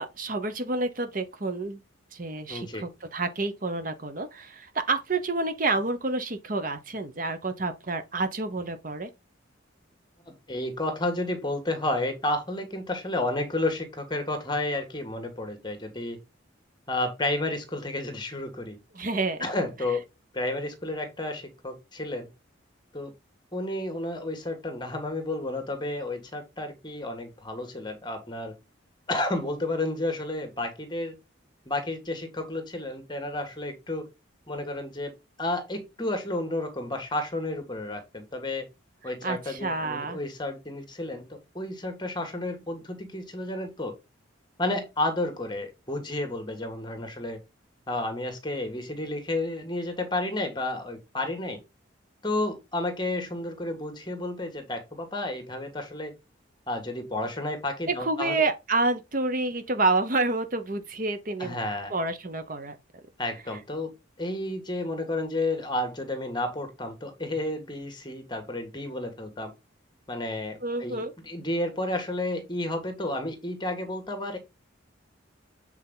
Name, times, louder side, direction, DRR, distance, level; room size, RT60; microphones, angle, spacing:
voice 1, 0.0-1.8 2.1-9.1 18.9-19.5 39.0-40.2 57.9-61.6 61.9-62.8 70.6-71.1, right 3 dB, 45° right, 0.9 m, -29 dB
voice 2, 2.5-2.8 10.3-16.2 16.9-18.8 19.4-20.0 20.3-22.3 22.9-23.1 23.5-28.5 29.1-31.1 31.6-34.1 34.5-35.1 35.4-38.7 39.0-43.9 44.6-47.4 47.9-51.6 52.2-56.1 56.7-58.4 61.4-61.9 63.2-63.9 64.2-69.5 70.1-74.4, left 2 dB, 20° left, 1.7 m, -31 dB
8.0 x 4.5 x 3.9 m
head